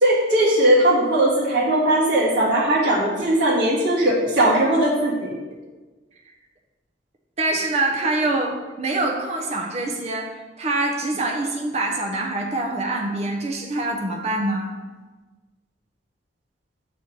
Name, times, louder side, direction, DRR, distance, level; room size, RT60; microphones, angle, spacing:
voice 1, 0.0-5.3, right 1 dB, 65° right, -7 dB, 1.8 m, -19 dB
voice 2, 7.4-10.3 10.6-14.8, right 2 dB, 35° right, 0 dB, 0.6 m, -25 dB
6.3 x 4.3 x 4.5 m, 1.3 s
head